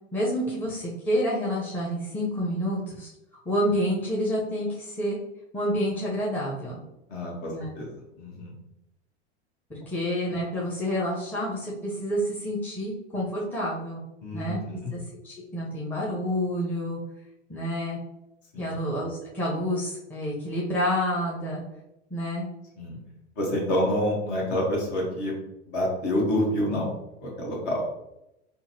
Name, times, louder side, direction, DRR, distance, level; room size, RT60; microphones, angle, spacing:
voice 1, 0.1-3.1 3.4-5.2 5.5-6.8 7.5-7.7 9.7-14.0 14.3-14.6 14.9-17.0 17.5-18.0 18.6-21.6 22.1-22.5, equal, 5° left, -6 dB, 0.7 m, -28 dB
voice 2, 7.1-8.5 14.2-14.9 18.5-18.8 22.8-23.0 23.4-25.4 25.6-26.9 27.2-27.8, left 1 dB, 50° left, -2 dB, 1.3 m, -28 dB
3.8 x 2.1 x 2.8 m, 0.87 s
figure-of-eight pair, 90°, 34 cm